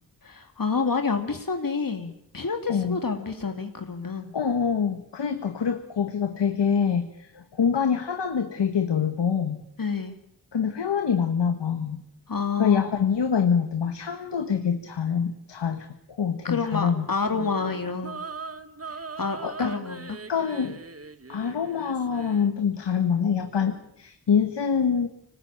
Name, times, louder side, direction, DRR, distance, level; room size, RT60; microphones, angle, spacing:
voice 1, 0.2-4.3 9.8-10.2 12.3-13.0 16.4-18.2 19.2-20.2, left 5 dB, 55° left, 5 dB, 2.4 m, -28 dB
voice 2, 4.3-9.6 10.5-12.0 12.6-17.1 17.4-17.5 19.4-19.7 20.3-20.8 21.3-25.1, left 7 dB, 90° left, 7 dB, 1.6 m, -25 dB
sound 1, 17.3-22.5, right 4 dB, 35° right, 1.5 m, -40 dB
25.0 x 19.5 x 8.8 m, 0.76 s
cardioid pair, 50°, 41 cm